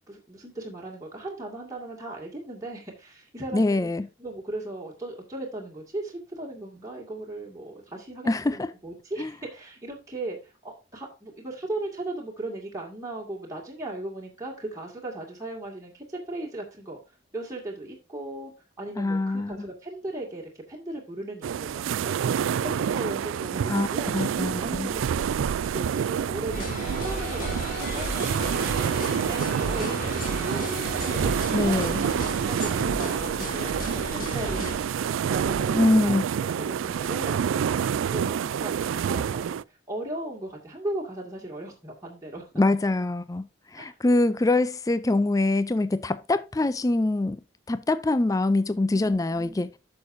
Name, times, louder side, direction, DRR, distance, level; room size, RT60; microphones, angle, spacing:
voice 1, 0.1-3.9 4.2-17.0 17.3-18.5 18.8-22.2 22.6-24.1 24.6-25.4 25.7-32.1 32.5-42.5 43.8-44.0 48.9-49.6, right 2 dB, 15° right, 2.1 m, -37 dB
voice 2, 3.5-4.1 8.3-8.7 9.2-9.3 19.0-19.7 23.7-23.9 24.1-24.9 31.5-32.1 35.7-36.2 42.6-47.4 47.7-49.7, left 2 dB, 15° left, 0.4 m, -24 dB
sound 1, 21.4-39.6, right 8 dB, 75° right, 0.3 m, -28 dB
sound 2, 26.5-34.7, left 1 dB, 40° left, 2.4 m, -34 dB
10.5 x 6.7 x 2.6 m
head